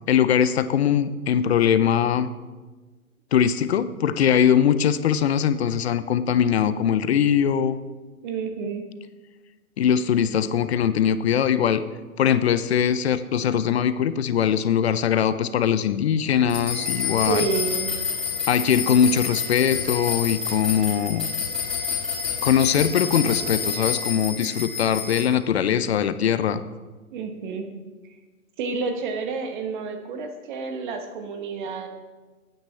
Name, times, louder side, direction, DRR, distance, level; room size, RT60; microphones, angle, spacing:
voice 1, 0.1-2.3 3.3-7.8 9.8-11.8 12.2-17.5 18.5-21.3 22.4-26.6, left 8 dB, 45° left, 13 dB, 0.6 m, -21 dB
voice 2, 8.2-8.8 17.3-17.9 27.1-27.7 28.0-28.2 28.6-31.9, right 5 dB, 35° right, 6 dB, 1.1 m, -29 dB
sound 1, 16.5-25.2, left 6 dB, ahead, 2.6 m, -28 dB
13.5 x 9.1 x 3.2 m, 1.3 s
hypercardioid pair, 135°, 44 cm